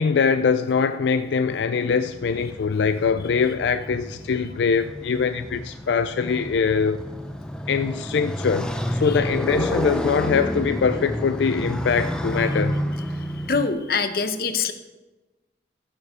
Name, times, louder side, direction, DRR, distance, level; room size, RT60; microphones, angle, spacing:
voice 1, 0.0-7.0 7.7-12.8, left 5 dB, 85° left, 0.4 m, -23 dB
Motorcycle, 1.4-13.7, equal, 5° left, 0.6 m, -30 dB
voice 2, 13.5-14.7, left 5 dB, 55° left, 0.8 m, -24 dB
14.0 x 7.3 x 4.9 m
head